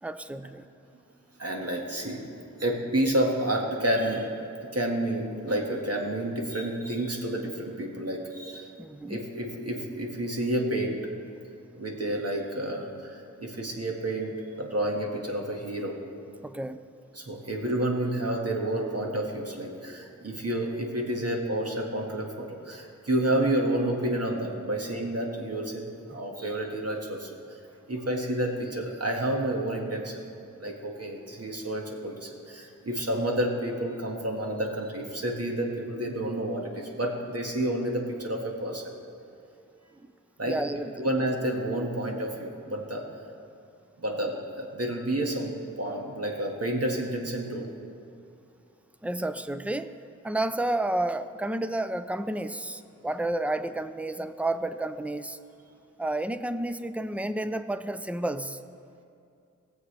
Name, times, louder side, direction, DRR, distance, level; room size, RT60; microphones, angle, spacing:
voice 1, 0.0-0.7 8.8-9.2 16.4-16.8 39.9-40.1 40.5-41.1 49.0-49.9 50.2-55.4 56.0-58.6, right 1 dB, 5° right, 11 dB, 0.5 m, -31 dB
voice 2, 1.4-2.3 2.6-4.3 4.6-8.7 9.1-11.0 11.7-16.0 17.2-27.4 27.9-30.2 30.6-38.9 40.4-40.6 41.0-43.0 44.0-47.7, right 1 dB, 55° right, 0 dB, 1.8 m, -30 dB
19.0 x 7.5 x 3.4 m, 2.5 s
cardioid pair, 50°, 31 cm